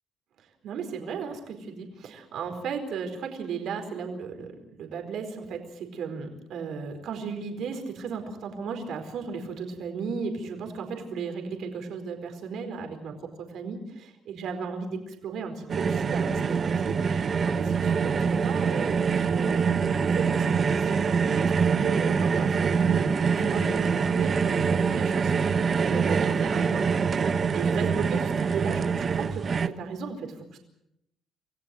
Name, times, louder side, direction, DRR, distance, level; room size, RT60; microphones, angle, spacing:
voice 1, 0.6-21.5 21.8-23.0 23.3-25.3 25.7-30.6, right 5 dB, 75° right, 5 dB, 4.6 m, -35 dB
sound 1, 15.7-29.7, right 6 dB, 45° right, 1.2 m, -25 dB
28.0 x 15.5 x 7.8 m, 0.80 s
cardioid pair, 90°, 0 cm